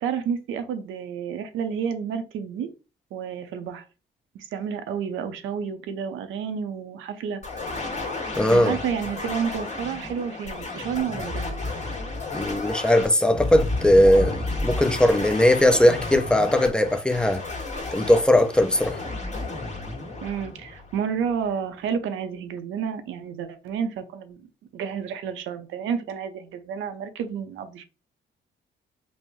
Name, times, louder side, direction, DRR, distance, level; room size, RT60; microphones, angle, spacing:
voice 1, 0.0-2.7 3.1-3.8 4.3-7.4 8.5-11.6 20.2-24.4 24.7-27.8, right 7 dB, 85° right, 0.6 m, -30 dB
sound 1, 7.4-21.3, left 2 dB, 35° left, 1.6 m, -32 dB
voice 2, 8.4-8.8 12.3-17.4 17.9-19.0, left 1 dB, 5° left, 0.6 m, -19 dB
5.3 x 2.1 x 3.1 m
cardioid pair, 90°, 20 cm